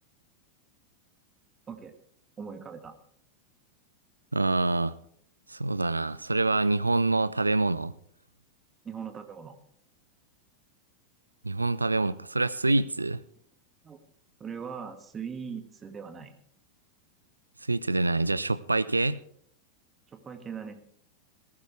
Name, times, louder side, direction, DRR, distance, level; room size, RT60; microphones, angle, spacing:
voice 1, 2.4-3.0 8.8-9.5 13.8-14.0 14.4-16.3 20.1-20.8, right 6 dB, 20° right, 8 dB, 1.9 m, -40 dB
voice 2, 4.3-4.9 5.5-7.9 11.4-13.2 17.7-19.2, right 2 dB, 80° right, 17 dB, 0.6 m, -26 dB
18.5 x 15.5 x 3.3 m, 0.63 s
figure-of-eight pair, 90°, 0 cm